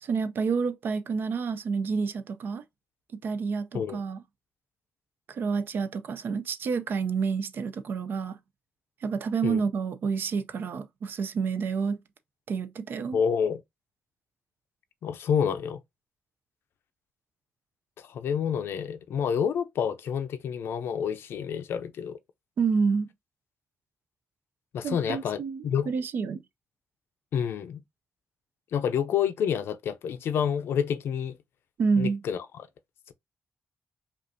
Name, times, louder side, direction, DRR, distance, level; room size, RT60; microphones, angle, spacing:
voice 1, 0.0-2.6 3.1-4.2 5.3-8.4 9.0-12.0 12.5-13.2 22.6-23.1 24.8-26.4 31.8-32.2, right 5 dB, 65° right, 0.5 m, -29 dB
voice 2, 13.1-13.6 15.0-15.8 18.0-22.2 24.7-25.9 27.3-27.8 28.7-31.4 32.0-32.7, left 7 dB, 85° left, 0.5 m, -28 dB
5.1 x 2.4 x 2.7 m
wide cardioid pair, 140°, 4 cm